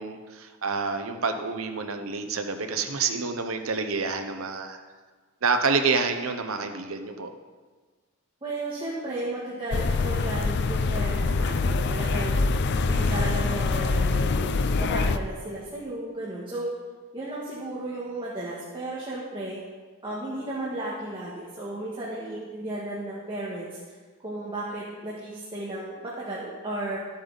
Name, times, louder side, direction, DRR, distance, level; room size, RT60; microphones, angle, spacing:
voice 1, 0.0-4.8 5.4-7.3 12.9-13.2, right 4 dB, 75° right, 7 dB, 0.9 m, -28 dB
voice 2, 8.4-12.3 12.9-14.5 14.8-16.7 17.1-19.6 20.0-23.7 24.2-27.0, right 1 dB, 25° right, -7 dB, 1.6 m, -34 dB
sound 1, 9.7-15.2, left 3 dB, 55° left, 0.5 m, -24 dB
12.5 x 8.5 x 4.0 m, 1.4 s
head